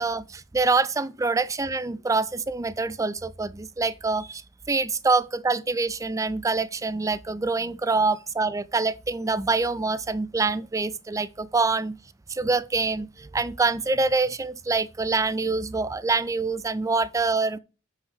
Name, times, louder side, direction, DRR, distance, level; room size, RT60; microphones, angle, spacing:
voice 1, 0.0-4.4 4.7-12.0 12.3-17.6, right 3 dB, 15° right, 0.4 m, -25 dB
6.0 x 5.5 x 6.4 m
head